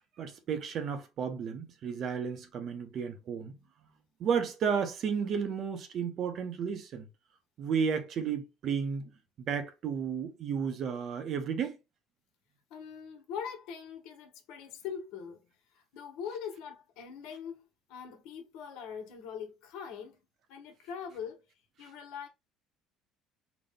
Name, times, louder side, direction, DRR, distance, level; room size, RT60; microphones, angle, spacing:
voice 1, 0.2-3.5 4.2-7.1 7.6-9.1 9.4-11.8 21.8-21.9, right 6 dB, 40° right, 0.7 m, -33 dB
voice 2, 12.7-20.2 20.5-21.4 21.8-22.3, left 7 dB, 80° left, 1.2 m, -42 dB
4.0 x 2.2 x 3.5 m
cardioid pair, 160°, 0 cm